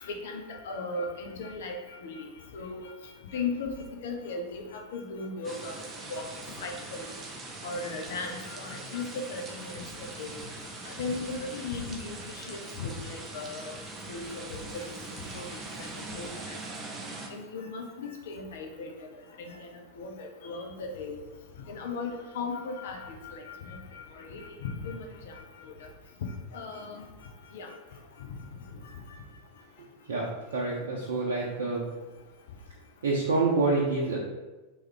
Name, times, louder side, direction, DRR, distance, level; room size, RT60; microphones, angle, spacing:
voice 1, 0.0-2.3 2.5-2.9 3.3-3.7 4.0-5.8 6.1-6.3 6.6-7.1 7.6-10.4 10.8-12.2 12.5-13.8 14.1-15.0 15.3-15.9 16.1-16.6 17.3-19.1 19.4-19.7 20.0-21.2 21.7-23.4 23.9-25.3 25.6-25.7 26.5-27.0 27.5-27.7, left 3 dB, 55° left, 2 dB, 0.6 m, -37 dB
sound 1, 5.4-17.3, right 2 dB, 20° right, 0.6 m, -42 dB
voice 2, 30.1-31.9 33.0-34.2, right 3 dB, 65° right, -4 dB, 0.6 m, -27 dB
3.1 x 3.0 x 3.6 m, 1.2 s
figure-of-eight pair, 90°, 0 cm